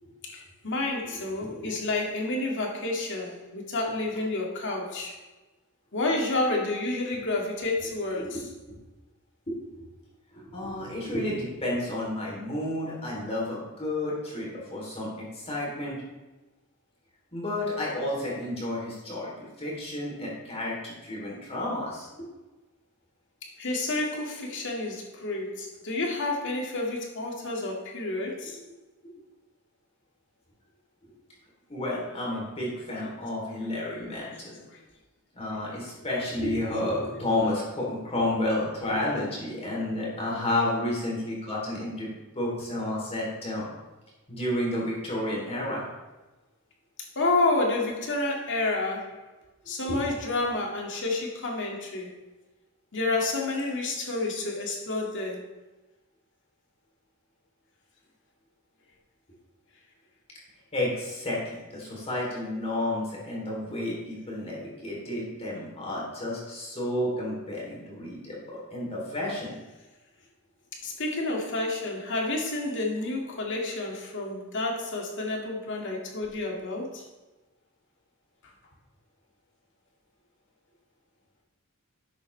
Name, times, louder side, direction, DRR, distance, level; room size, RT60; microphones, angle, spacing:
voice 1, 0.2-5.2 5.9-8.4 23.4-28.6 34.7-34.8 47.2-49.2 49.7-52.2 52.9-55.5 70.8-77.1, left 2 dB, 60° left, 0 dB, 2.0 m, -29 dB
voice 2, 10.3-16.0 17.3-22.1 31.0-31.1 31.7-34.6 35.3-43.7 44.3-45.8 49.9-50.0 60.7-69.6, left 1 dB, 30° left, -4 dB, 3.1 m, -31 dB
11.5 x 8.1 x 3.2 m, 1.1 s
head